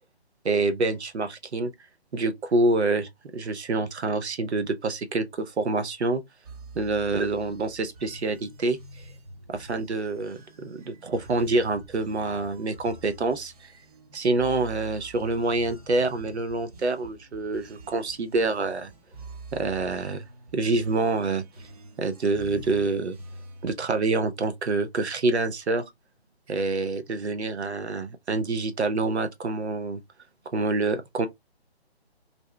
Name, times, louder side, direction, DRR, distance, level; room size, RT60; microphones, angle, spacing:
voice 1, 0.4-1.7 2.1-6.2 6.8-8.8 9.5-13.5 14.1-18.9 19.5-20.2 20.5-21.4 22.0-23.2 23.6-25.8 26.5-30.0 30.5-31.3, right 3 dB, 90° right, 0.6 m, -26 dB
sound 1, 6.4-23.7, right 2 dB, 35° right, 0.6 m, -47 dB
2.6 x 2.1 x 3.2 m
figure-of-eight pair, 150°, 32 cm